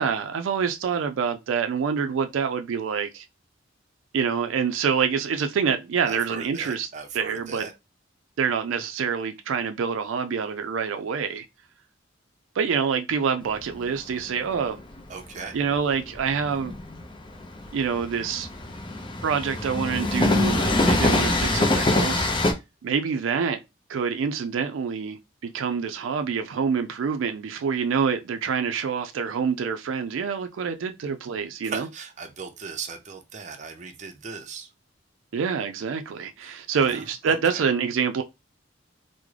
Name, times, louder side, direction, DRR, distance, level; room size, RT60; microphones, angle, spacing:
voice 1, 0.0-3.2 4.1-6.9 7.1-7.7 8.4-11.5 12.6-14.8 15.5-16.7 17.7-18.5 19.2-22.3 22.8-23.6 23.9-31.9 35.3-38.2, right 6 dB, 85° right, 0.4 m, -26 dB
voice 2, 6.1-7.7 15.1-15.6 31.6-34.7 36.4-36.6 36.9-37.0 37.3-37.6, right 5 dB, 40° right, 0.5 m, -38 dB
Train, 13.4-22.5, left 2 dB, 25° left, 0.5 m, -25 dB
3.6 x 2.1 x 3.2 m
head